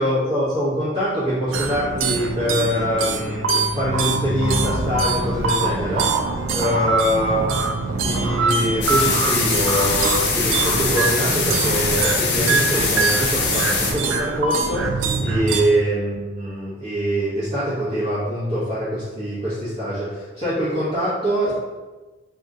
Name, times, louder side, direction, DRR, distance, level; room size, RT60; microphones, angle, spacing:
voice 1, 0.0-6.1 6.5-21.5, equal, 25° right, -14 dB, 1.0 m, -24 dB
sound 1, 1.5-15.6, right 3 dB, 70° right, 0.3 m, -23 dB
sound 2, 8.8-13.9, left 4 dB, 55° left, 0.6 m, -22 dB
2.9 x 2.4 x 3.7 m, 1.2 s
head